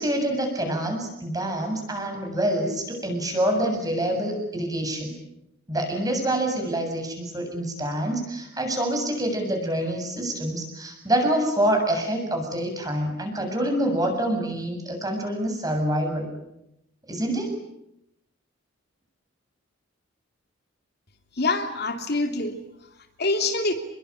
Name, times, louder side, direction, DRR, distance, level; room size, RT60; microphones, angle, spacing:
voice 1, 0.0-5.1 5.7-16.3 17.1-17.5, right 1 dB, 20° right, 4 dB, 7.6 m, -26 dB
voice 2, 21.3-23.7, left 2 dB, 55° left, 5 dB, 2.8 m, -26 dB
29.5 x 22.0 x 8.7 m, 0.82 s
head